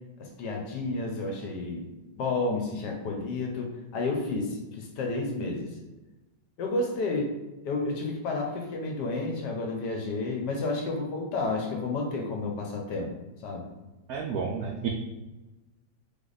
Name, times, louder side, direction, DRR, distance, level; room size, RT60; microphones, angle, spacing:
voice 1, 0.2-5.7 6.6-7.4 7.6-13.1 13.4-13.7, left 3 dB, 65° left, 1 dB, 1.2 m, -31 dB
voice 2, 14.1-14.9, right 6 dB, 80° right, 0 dB, 0.8 m, -31 dB
3.5 x 3.3 x 3.9 m, 1.1 s
omnidirectional pair, 2.1 m